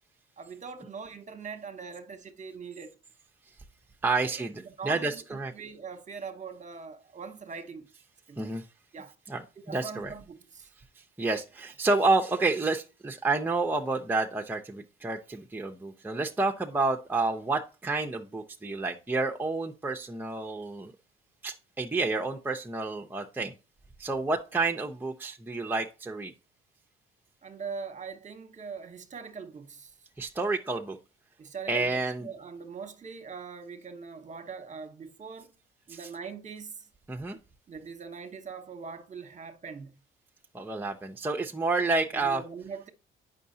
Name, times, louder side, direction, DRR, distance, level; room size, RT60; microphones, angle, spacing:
voice 1, 0.4-2.9 4.3-7.9 8.3-8.5 8.9-9.1 9.6-10.7 27.4-29.9 31.4-35.5 35.9-36.7 37.7-39.9 42.2-42.9, right 5 dB, 35° right, 1.0 m, -42 dB
voice 2, 4.0-5.5 8.4-8.6 9.3-9.4 9.7-10.1 11.2-20.9 21.4-23.5 24.0-26.3 30.2-31.0 31.7-32.3 35.9-36.1 37.1-37.4 40.5-42.4, right 3 dB, 10° right, 0.6 m, -29 dB
8.2 x 5.6 x 2.7 m
cardioid pair, 80°, 21 cm